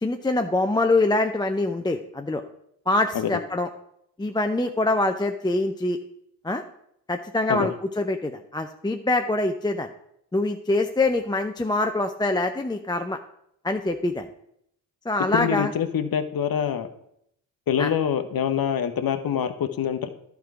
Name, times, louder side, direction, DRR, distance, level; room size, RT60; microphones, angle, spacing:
voice 1, 0.0-2.4 2.9-3.7 4.2-6.0 6.4-6.6 7.1-7.7 8.0-9.9 10.3-13.2 13.6-14.3 15.1-15.7 17.8-17.9, left 2 dB, 10° left, 5 dB, 0.5 m, -24 dB
voice 2, 15.3-16.9 17.7-20.1, left 8 dB, 50° left, 10 dB, 0.9 m, -25 dB
11.0 x 4.7 x 4.7 m, 0.73 s
hypercardioid pair, 45°, 46 cm